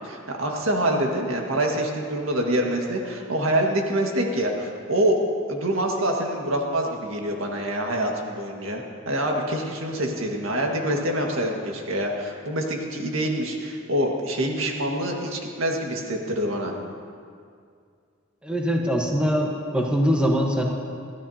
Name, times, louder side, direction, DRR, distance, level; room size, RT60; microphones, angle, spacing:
voice 1, 0.0-5.2 5.5-16.8, right 1 dB, 75° right, 0 dB, 1.8 m, -26 dB
voice 2, 18.4-20.6, equal, 5° right, -1 dB, 1.2 m, -22 dB
22.5 x 15.0 x 2.9 m, 2.3 s
head